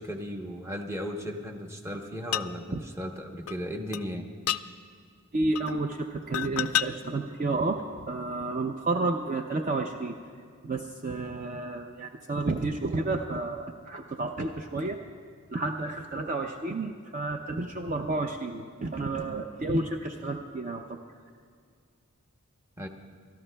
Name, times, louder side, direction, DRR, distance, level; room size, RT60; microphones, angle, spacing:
voice 1, 0.0-4.3 22.8-22.9, equal, 10° right, 3 dB, 0.8 m, -36 dB
sound 1, 2.3-2.5 3.5-3.6 3.9-4.0 4.5-4.6 5.6-5.8 6.3-6.9 7.8-7.9, left 12 dB, 75° left, 0.3 m, -29 dB
voice 2, 5.3-7.8 8.1-10.2 10.6-15.0 15.5-20.8, right 2 dB, 35° right, 4 dB, 0.4 m, -31 dB
29.5 x 13.0 x 2.2 m, 2.1 s
head